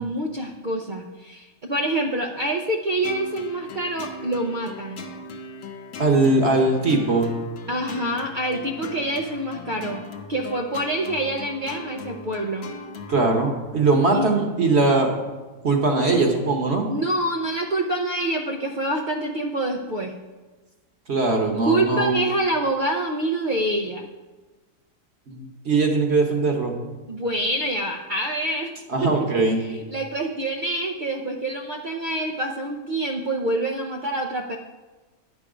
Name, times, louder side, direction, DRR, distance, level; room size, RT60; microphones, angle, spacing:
voice 1, 0.0-5.0 7.7-10.0 10.3-12.7 14.1-14.3 16.9-20.1 21.6-24.0 27.1-28.7 29.6-34.6, right 1 dB, 80° right, 1 dB, 0.4 m, -26 dB
sound 1, 3.0-13.3, left 3 dB, 60° left, 1.0 m, -38 dB
voice 2, 6.0-7.3 13.1-15.1 15.6-16.9 21.1-22.2 25.3-26.8 28.9-29.6, right 3 dB, 45° right, 2 dB, 1.1 m, -20 dB
10.0 x 6.1 x 5.0 m, 1.2 s
omnidirectional pair, 1.7 m